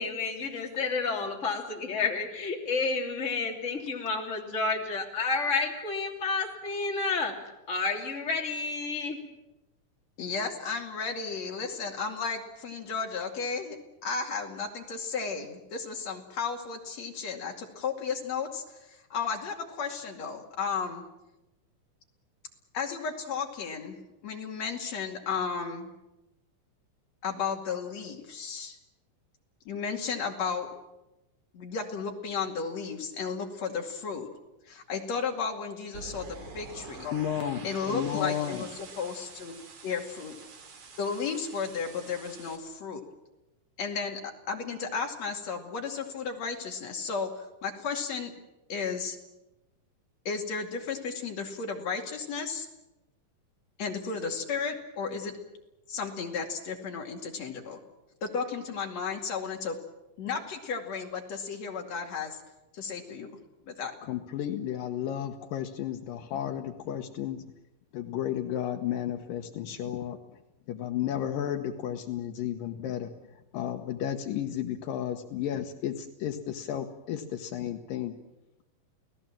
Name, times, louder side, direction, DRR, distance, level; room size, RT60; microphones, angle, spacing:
voice 1, 0.0-7.3 7.7-9.2, left 4 dB, 20° left, 1 dB, 3.0 m, -30 dB
voice 2, 10.2-13.8 14.0-21.0 22.7-24.0 24.2-25.9 27.2-28.8 29.6-30.7 31.5-34.3 34.7-36.3 36.5-37.1 37.6-38.7 39.0-40.4 41.0-43.0 43.8-44.2 44.5-48.3 48.7-49.2 50.2-52.7 53.8-55.4 55.9-57.8 58.2-59.8 60.2-62.4 62.7-63.4 63.7-63.9, left 5 dB, 50° left, 3 dB, 3.4 m, -34 dB
sound 1, 35.9-42.6, right 5 dB, 60° right, 3.8 m, -47 dB
voice 3, 37.0-38.7 64.0-67.5 67.9-70.2 70.7-73.1 73.5-78.1, left 10 dB, 75° left, 6 dB, 2.8 m, -33 dB
29.0 x 18.5 x 7.5 m, 0.96 s
omnidirectional pair, 4.1 m